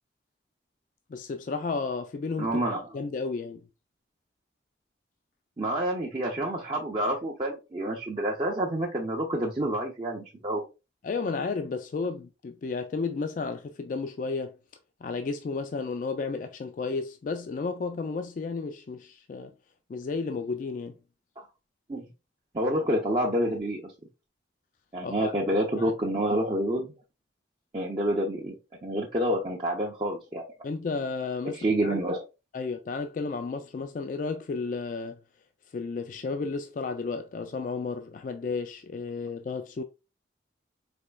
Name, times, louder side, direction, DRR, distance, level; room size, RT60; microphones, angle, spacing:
voice 1, 1.1-2.6 2.9-3.6 11.0-14.5 15.0-19.5 19.9-21.0 25.0-25.3 25.8-25.9 30.6-31.9 32.5-35.2 35.7-39.8, left 4 dB, 45° left, 0.3 m, -32 dB
voice 2, 2.4-2.9 5.6-10.6 21.9-22.1 22.5-23.9 24.9-26.9 27.7-28.6 28.8-30.5 31.4-32.2, right 1 dB, 30° right, 0.5 m, -28 dB
4.2 x 2.9 x 2.2 m
head